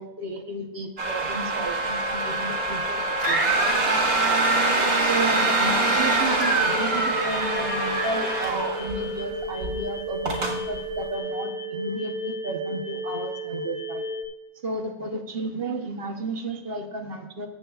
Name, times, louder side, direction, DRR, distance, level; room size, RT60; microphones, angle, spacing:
voice 1, 0.0-3.7 5.0-14.0 14.6-17.5, right 2 dB, 45° right, 4 dB, 1.0 m, -33 dB
sound 1, 1.0-9.2 9.6-9.8 10.3-10.6, right 2 dB, 75° right, 2.1 m, -24 dB
sound 2, 6.5-14.3, equal, 60° left, 1.2 m, -33 dB
14.5 x 7.7 x 2.3 m, 0.95 s
omnidirectional pair, 1.6 m